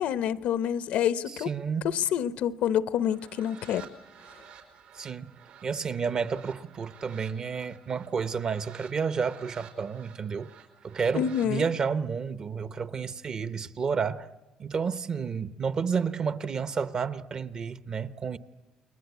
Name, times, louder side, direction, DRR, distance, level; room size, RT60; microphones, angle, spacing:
voice 1, 0.0-1.5 1.8-3.9 11.1-11.7, left 9 dB, 75° left, 0.9 m, -27 dB
voice 2, 1.3-1.9 4.9-5.3 5.6-10.5 10.8-14.3 14.6-18.4, right 6 dB, 35° right, 0.9 m, -31 dB
sound 1, 3.0-11.5, right 8 dB, 80° right, 4.7 m, -52 dB
29.5 x 22.0 x 8.2 m
cardioid pair, 140°, 2 cm